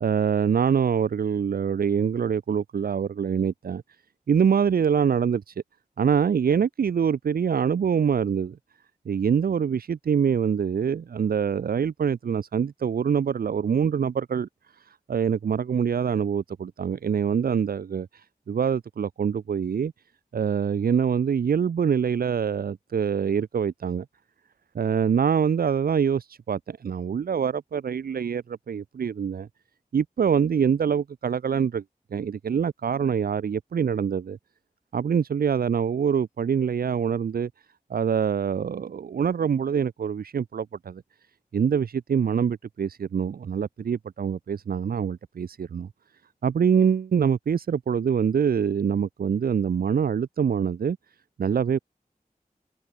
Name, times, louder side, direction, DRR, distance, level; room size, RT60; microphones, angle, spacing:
voice 1, 0.0-3.8 4.3-5.5 6.0-8.6 9.1-14.5 14.8-19.9 20.3-24.1 24.7-29.5 29.9-31.8 32.1-34.4 34.9-37.5 37.9-41.0 41.5-45.9 46.4-51.0 51.4-51.8, right 7 dB, 85° right, 0.4 m, -25 dB
wide cardioid pair, 55°, 15 cm